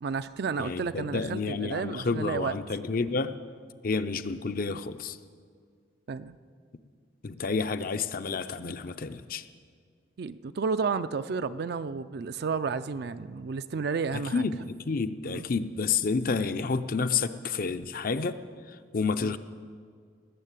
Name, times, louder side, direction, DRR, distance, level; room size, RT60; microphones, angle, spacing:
voice 1, 0.0-2.5 6.1-6.4 10.2-14.5 15.2-15.5 19.2-19.3, right 5 dB, 60° right, 11 dB, 0.4 m, -32 dB
voice 2, 0.6-3.3 3.8-5.2 7.2-9.4 14.3-18.4 18.9-19.4, left 4 dB, 50° left, 11 dB, 0.6 m, -30 dB
19.0 x 7.5 x 8.2 m, 2.1 s
head